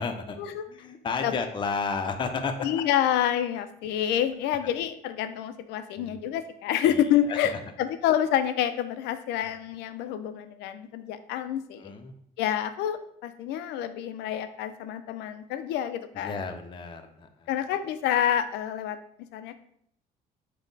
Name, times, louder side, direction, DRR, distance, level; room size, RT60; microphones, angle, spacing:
voice 1, 0.0-0.4 0.7-2.5 6.0-6.2 6.8-7.0 11.8-12.1 16.2-17.3, left 4 dB, 30° left, 5 dB, 0.5 m, -32 dB
voice 2, 2.6-11.9 12.4-16.4 17.5-19.5, left 10 dB, 85° left, 11 dB, 0.4 m, -28 dB
5.2 x 2.1 x 3.9 m, 0.69 s
cardioid pair, 110°, 17 cm